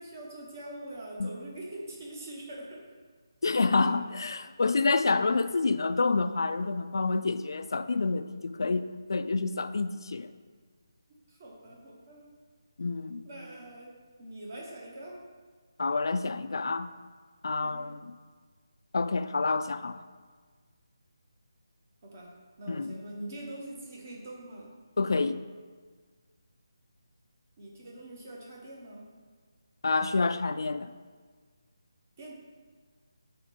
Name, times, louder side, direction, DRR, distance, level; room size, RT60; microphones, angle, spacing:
voice 1, 0.0-2.9 3.7-3.9 11.1-12.3 13.2-15.2 17.5-18.0 22.0-24.7 27.6-29.1 32.2-32.3, right 1 dB, 35° right, -2 dB, 1.1 m, -44 dB
voice 2, 3.4-10.3 12.8-13.3 15.8-16.9 17.4-18.2 18.9-20.0 22.7-22.9 25.0-25.4 29.8-30.9, left 3 dB, 65° left, 11 dB, 0.3 m, -28 dB
5.0 x 4.2 x 5.2 m, 1.5 s
figure-of-eight pair, 165°, 2 cm